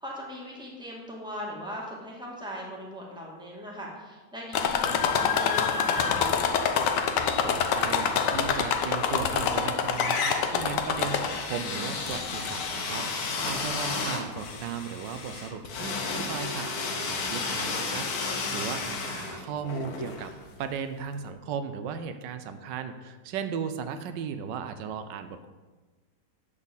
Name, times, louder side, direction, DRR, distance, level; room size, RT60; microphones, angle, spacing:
voice 1, 0.0-6.4 13.9-14.0 19.1-19.4, equal, 5° right, -3 dB, 1.8 m, -39 dB
sound 1, 4.5-11.6 12.1-12.7 13.5-13.6 14.0-14.1, left 6 dB, 80° left, 1.4 m, -26 dB
voice 2, 7.2-20.3 20.6-25.5, right 7 dB, 85° right, 10 dB, 1.3 m, -36 dB
sound 2, 9.1-9.6 9.9-20.8, left 4 dB, 60° left, 1.5 m, -33 dB
10.5 x 4.2 x 7.1 m, 1.3 s
omnidirectional pair, 1.9 m